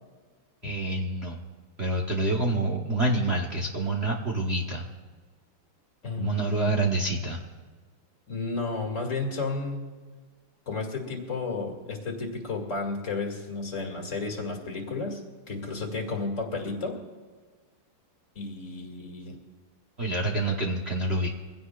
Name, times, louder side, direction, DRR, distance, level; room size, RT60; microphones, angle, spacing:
voice 1, 0.6-1.4 1.8-4.9 6.2-7.4 20.0-21.3, right 2 dB, 40° right, 0 dB, 1.0 m, -27 dB
voice 2, 6.0-6.7 8.3-9.9 10.7-15.2 15.5-17.0 18.4-19.4, left 3 dB, 35° left, 1 dB, 2.4 m, -32 dB
23.5 x 16.5 x 2.4 m, 1.5 s
omnidirectional pair, 2.4 m